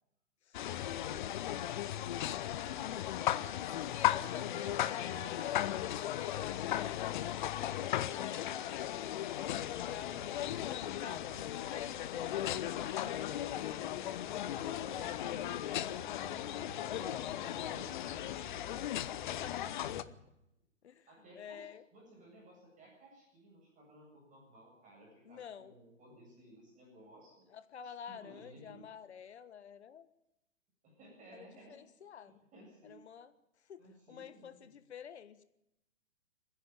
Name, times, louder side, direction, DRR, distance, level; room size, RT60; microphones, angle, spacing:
sound 1, 0.5-20.0, left 12 dB, 40° left, 0.8 m, -36 dB
voice 1, 0.5-3.5 4.1-5.3 10.2-11.1 12.8-13.1 14.5-15.5 16.5-18.7 19.5-19.7 21.1-27.5 27.8-28.8 30.8-31.8 32.5-33.0 33.8-34.7, right 1 dB, 20° right, -1 dB, 7.8 m, -57 dB
voice 2, 3.9-9.2 9.6-11.2 11.7-15.4 16.2-17.8 19.1-19.6 19.8-20.1 20.8-21.1 21.3-21.8 25.2-25.8 27.5-30.1 31.3-32.4 32.8-33.3 33.7-35.4, left 8 dB, 55° left, 13 dB, 1.4 m, -49 dB
sound 2, 9.5-20.1, left 2 dB, 15° left, 5.0 m, -55 dB
28.0 x 10.5 x 9.3 m, 0.87 s
figure-of-eight pair, 115°, 39 cm